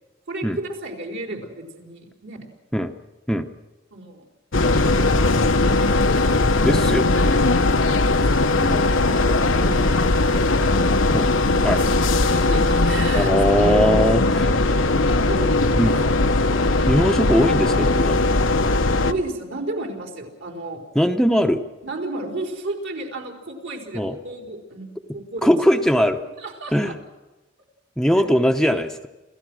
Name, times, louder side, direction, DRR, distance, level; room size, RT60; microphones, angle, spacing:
voice 1, 0.3-2.4 3.9-4.2 4.5-6.0 7.6-8.5 9.0-10.0 10.6-10.9 11.7-11.9 12.3-13.3 13.7-14.2 14.4-14.9 15.3-15.8 19.0-20.8 21.8-24.9 25.1-25.5 26.4-27.0, right 2 dB, 70° right, 1 dB, 4.4 m, -33 dB
sound 1, 4.5-19.1, left 2 dB, 90° left, 1.1 m, -19 dB
voice 2, 6.6-7.5 8.6-9.0 11.1-11.3 11.6-11.8 13.1-14.5 15.8-16.1 16.9-18.2 20.9-21.6 23.9-24.2 25.4-26.2 26.7-27.0 28.0-29.1, equal, 5° left, 5 dB, 0.8 m, -20 dB
28.0 x 15.5 x 6.3 m, 1.1 s
head